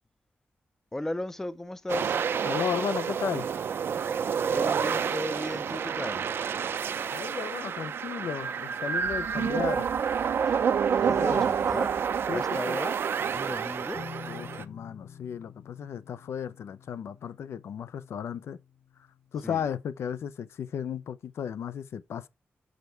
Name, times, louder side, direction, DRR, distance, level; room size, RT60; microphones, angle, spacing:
voice 1, 0.9-2.2 4.0-6.3 10.5-10.6 11.0-12.0 12.3-13.0 13.3-14.1 19.4-19.6, left 1 dB, 10° left, 0.4 m, -36 dB
sound 1, 1.9-14.6, right 7 dB, 60° right, 0.5 m, -29 dB
voice 2, 2.4-3.5 7.1-9.9 11.1-11.4 12.3-12.4 12.7-12.8 14.3-18.6 19.3-22.3, left 8 dB, 90° left, 0.5 m, -34 dB
sound 2, 9.0-13.2, right 5 dB, 85° right, 1.4 m, -48 dB
sound 3, 13.9-19.5, left 6 dB, 35° left, 0.8 m, -48 dB
6.5 x 5.1 x 4.4 m
wide cardioid pair, 160°, 4 cm